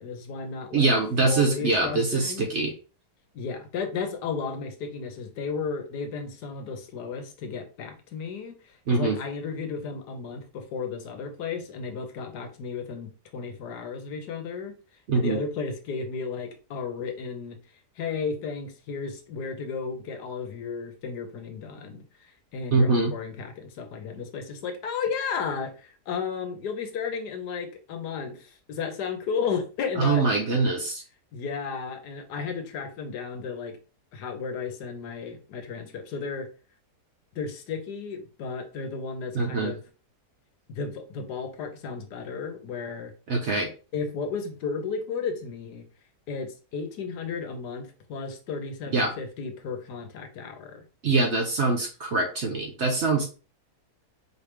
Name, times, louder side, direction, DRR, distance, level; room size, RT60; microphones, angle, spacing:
voice 1, 0.0-0.9 1.2-2.5 3.3-14.7 15.1-17.6 18.0-30.2 31.3-33.8 34.1-36.5 37.3-39.8 40.7-43.1 43.9-45.8 46.3-50.8, left 5 dB, 85° left, 6 dB, 1.5 m, -33 dB
voice 2, 0.7-2.7 8.9-9.2 15.1-15.4 22.7-23.1 30.0-31.0 39.3-39.7 43.3-43.7 48.9-49.1 51.0-53.2, right 3 dB, 55° right, 2 dB, 0.9 m, -23 dB
4.6 x 3.3 x 3.3 m, 0.35 s
omnidirectional pair, 1.7 m